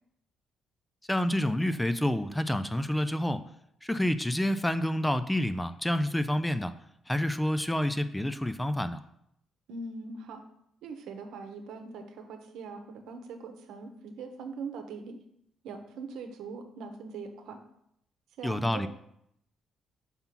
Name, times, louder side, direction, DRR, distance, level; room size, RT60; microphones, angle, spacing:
voice 1, 1.1-3.4 3.8-6.7 7.1-9.0 18.4-18.9, left 1 dB, 5° left, 11 dB, 0.3 m, -28 dB
voice 2, 9.7-10.4 10.8-15.2 15.6-17.6 18.4-18.9, right 4 dB, 90° right, 6 dB, 0.9 m, -41 dB
5.6 x 3.7 x 5.8 m, 0.74 s
cardioid pair, 125°, 0 cm